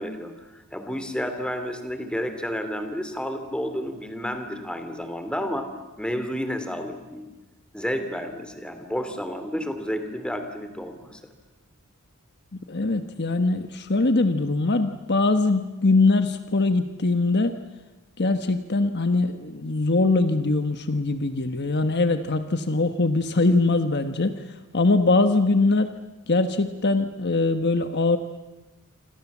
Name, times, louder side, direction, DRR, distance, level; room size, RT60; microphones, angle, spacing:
voice 1, 0.0-5.7 6.0-7.2 7.7-11.2, equal, 5° left, 7 dB, 2.8 m, -31 dB
voice 2, 12.7-17.6 18.2-24.4 24.7-25.9 26.3-28.2, left 3 dB, 50° left, 9 dB, 1.3 m, -22 dB
27.5 x 27.0 x 7.4 m, 1.1 s
head